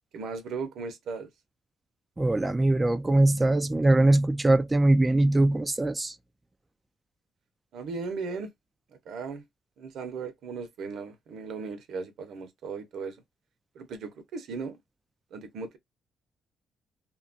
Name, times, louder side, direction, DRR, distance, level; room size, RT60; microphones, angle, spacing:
voice 1, 0.1-1.3 7.7-8.5 9.1-9.4 9.8-13.2 13.7-14.8 15.3-15.8, right 4 dB, 75° right, 0.7 m, -37 dB
voice 2, 2.2-6.1, right 2 dB, 15° right, 0.3 m, -22 dB
2.8 x 2.2 x 2.6 m
cardioid pair, 90°, 0 cm